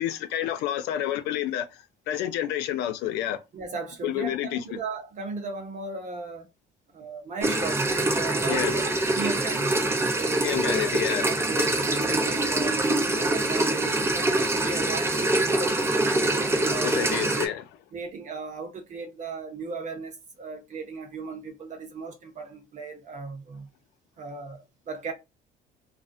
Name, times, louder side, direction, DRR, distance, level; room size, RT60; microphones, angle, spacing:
voice 1, 0.0-3.4 4.0-4.6 8.5-8.7 10.4-11.3 16.8-17.6, left 11 dB, 90° left, 0.4 m, -29 dB
voice 2, 3.5-6.5 6.9-9.8 10.1-10.9 11.3-12.8 13.2-17.4 17.9-23.7 24.2-25.1, right 4 dB, 45° right, 1.0 m, -37 dB
sound 1, 7.4-17.5, right 2 dB, 15° right, 0.5 m, -25 dB
2.4 x 2.0 x 2.5 m
cardioid pair, 110°, 17 cm